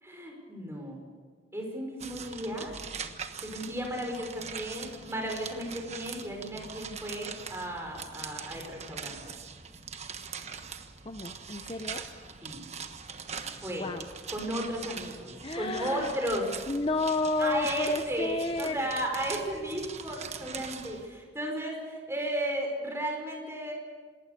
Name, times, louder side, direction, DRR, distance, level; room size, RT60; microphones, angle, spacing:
voice 1, 0.0-1.0 1.5-2.8 3.4-9.3 12.4-12.6 13.6-13.9 14.3-16.4 17.4-23.7, right 1 dB, 15° right, 1 dB, 5.5 m, -34 dB
sound 1, 2.0-21.1, right 6 dB, 35° right, 1.3 m, -42 dB
voice 2, 11.0-12.0 13.8-14.1 15.4-16.2 16.7-18.8, left 3 dB, 30° left, 7 dB, 0.8 m, -31 dB
27.5 x 19.5 x 6.8 m, 1.6 s
head